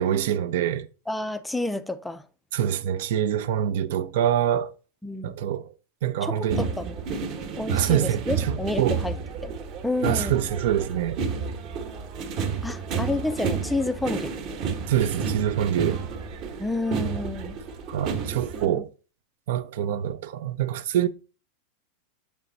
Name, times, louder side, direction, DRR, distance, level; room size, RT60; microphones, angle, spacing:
voice 1, 0.0-0.9 2.5-4.7 5.2-5.7 6.0-6.6 7.7-9.0 10.0-11.2 14.9-16.0 17.9-18.9 19.5-21.1, right 10 dB, 65° right, 0.6 m, -25 dB
voice 2, 1.1-2.2 5.0-5.3 6.2-7.2 7.6-9.2 9.4-9.5 9.8-10.3 12.6-14.4 16.6-17.6 18.5-18.8, left 2 dB, 5° left, 0.4 m, -30 dB
sound 1, 6.5-18.7, right 5 dB, 40° right, 1.1 m, -31 dB
8.3 x 3.3 x 4.0 m
supercardioid pair, 160°, 0 cm